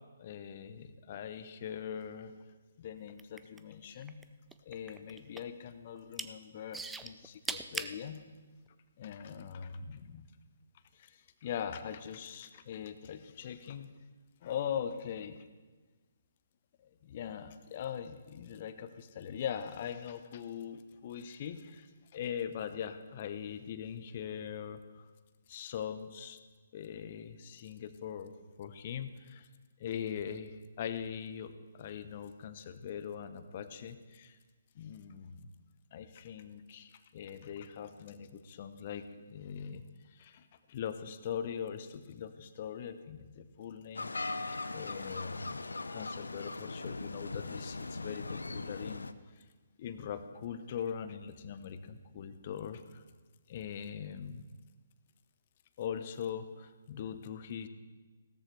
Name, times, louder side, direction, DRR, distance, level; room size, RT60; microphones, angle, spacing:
voice 1, 0.2-2.3 2.8-4.2 4.7-8.2 9.0-10.2 10.9-13.9 14.4-15.5 17.0-25.1 25.5-26.4 26.7-28.3 28.6-29.5 29.8-34.4 34.7-35.5 35.9-44.1 44.5-45.6 45.9-49.4 49.8-53.0 53.5-54.4 55.8-57.7, left 8 dB, 40° left, 11 dB, 0.9 m, -41 dB
sound 1, 3.1-4.2 4.5-5.6 6.0-6.3 6.7-8.0 8.7-8.8, right 3 dB, 5° right, 0.4 m, -39 dB
sound 2, 43.9-49.1, left 3 dB, 75° left, 0.6 m, -39 dB
16.5 x 13.5 x 3.3 m, 1.3 s
figure-of-eight pair, 135°, 0 cm